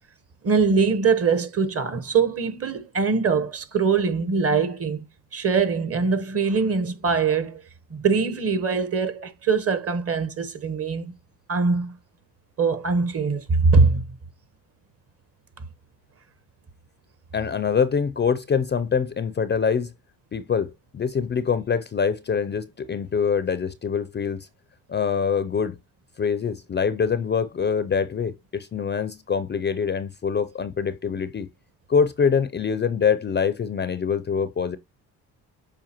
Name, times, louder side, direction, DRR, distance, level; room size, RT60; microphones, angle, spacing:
voice 1, 0.4-5.1 5.3-7.6 7.9-11.1 11.5-11.9 12.6-14.0, right 5 dB, 35° right, 1.1 m, -22 dB
voice 2, 17.3-19.9 20.3-24.5 24.9-25.8 26.2-31.5 31.9-34.8, left 6 dB, 30° left, 0.4 m, -24 dB
7.7 x 4.6 x 2.9 m
cardioid pair, 100°, 39 cm